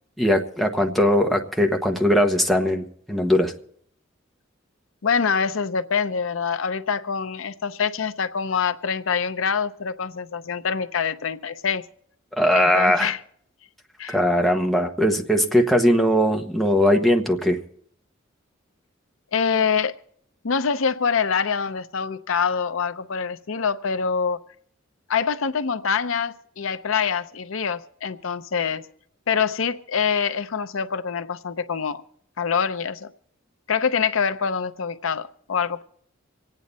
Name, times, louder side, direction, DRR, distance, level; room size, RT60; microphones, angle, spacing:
voice 1, 0.2-3.5 12.4-13.1 14.1-17.6, equal, ahead, 1 dB, 1.2 m, -20 dB
voice 2, 5.0-11.8 12.5-13.2 14.0-14.2 19.3-19.9 20.4-24.4 25.1-28.8 29.3-32.0 32.4-33.1 33.7-35.8, left 6 dB, 80° left, 10 dB, 0.6 m, -25 dB
26.0 x 9.1 x 4.1 m, 0.65 s
head